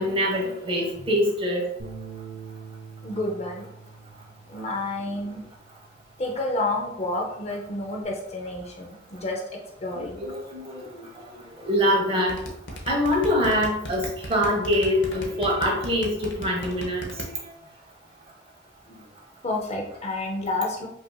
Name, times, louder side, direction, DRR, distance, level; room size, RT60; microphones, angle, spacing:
voice 1, 0.0-1.6 10.0-11.1 11.6-12.4 12.9-17.4, equal, 30° right, -2 dB, 0.9 m, -24 dB
sound 1, 1.8-8.0, right 5 dB, 70° right, 0.7 m, -45 dB
voice 2, 3.0-3.6 4.5-5.4 6.2-10.3 19.4-20.9, left 2 dB, 35° left, 1 dB, 0.6 m, -30 dB
sound 2, 12.3-17.3, equal, 65° left, 0.8 m, -35 dB
5.3 x 2.6 x 2.2 m, 0.79 s
head